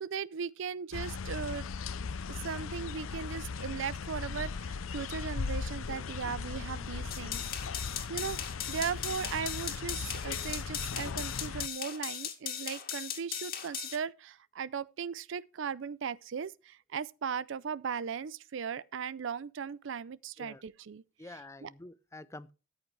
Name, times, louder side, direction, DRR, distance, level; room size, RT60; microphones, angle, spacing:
voice 1, 0.0-1.7 2.3-7.4 8.1-8.4 8.7-21.0 21.6-21.7, right 6 dB, 65° right, 0.4 m, -37 dB
sound 1, 0.9-11.7, left 5 dB, 85° left, 0.6 m, -38 dB
sound 2, 7.1-14.0, left 9 dB, 50° left, 2.1 m, -38 dB
voice 2, 21.2-22.5, left 2 dB, 15° left, 0.5 m, -47 dB
13.5 x 8.6 x 3.2 m
head